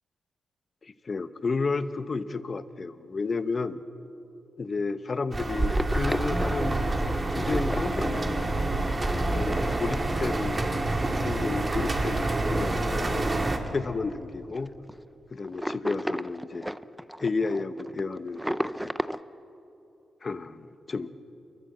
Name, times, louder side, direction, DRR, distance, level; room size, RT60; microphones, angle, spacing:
voice 1, 0.8-3.8 4.6-8.5 9.1-10.7 11.1-13.3 13.7-14.7 15.3-16.7 17.2-18.9 20.2-21.1, left 4 dB, 35° left, 12 dB, 1.0 m, -32 dB
sound 1, 5.3-13.6, right 2 dB, 25° right, 2.2 m, -27 dB
sound 2, 5.5-10.5 10.9-11.0 11.8-11.9 12.3-12.4 12.8-13.3 13.6-13.7 14.0-14.1 14.5-14.9 15.4-19.2, equal, 5° right, 0.5 m, -34 dB
29.0 x 22.5 x 7.9 m, 3.0 s
wide cardioid pair, 120°, 0 cm